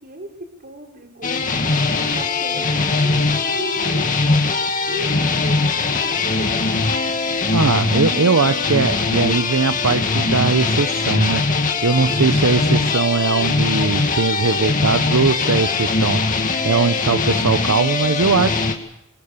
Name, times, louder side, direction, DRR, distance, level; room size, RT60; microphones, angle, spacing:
voice 1, 0.0-4.5 4.9-6.6, right 1 dB, 45° right, 3 dB, 5.2 m, -36 dB
sound 1, 1.2-18.7, left 3 dB, 40° left, 2.2 m, -21 dB
voice 2, 7.5-18.7, right 4 dB, 70° right, 10 dB, 0.8 m, -20 dB
25.0 x 22.5 x 6.8 m, 0.79 s
head